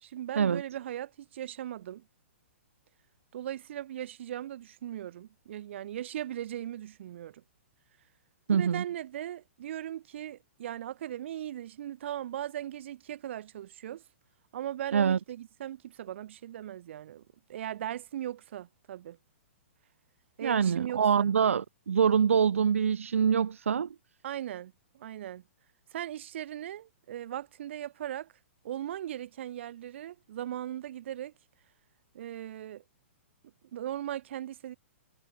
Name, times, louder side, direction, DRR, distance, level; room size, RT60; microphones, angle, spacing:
voice 1, 0.0-2.1 3.3-7.4 8.5-14.0 14.5-19.2 20.4-21.3 24.2-25.4 25.9-28.3 28.6-31.3 32.1-32.8 33.7-34.8, right 11 dB, 60° right, 3.1 m, -38 dB
voice 2, 8.5-8.8 14.9-15.2 20.4-23.9, right 7 dB, 80° right, 1.2 m, -25 dB
hypercardioid pair, 125°, 7 cm